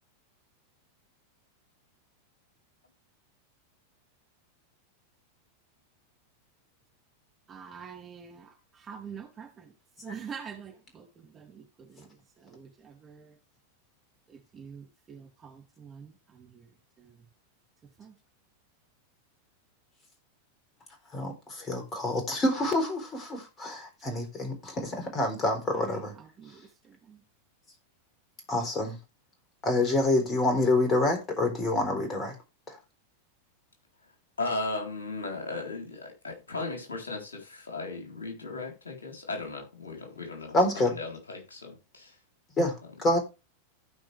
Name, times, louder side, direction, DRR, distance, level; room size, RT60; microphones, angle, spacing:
voice 1, 7.5-9.7 10.0-13.4 14.3-16.7 17.0-17.2 18.0-18.1 25.7-27.2, right 7 dB, 20° right, 2.4 m, -46 dB
voice 2, 21.1-26.1 28.5-29.0 29.6-32.3 32.7-32.8 40.5-41.0 42.6-42.7 43.0-43.2, left 2 dB, 25° left, 3.9 m, -27 dB
voice 3, 34.4-42.1, left 3 dB, 70° left, 3.9 m, -36 dB
15.5 x 5.2 x 3.4 m
figure-of-eight pair, 90°, 0 cm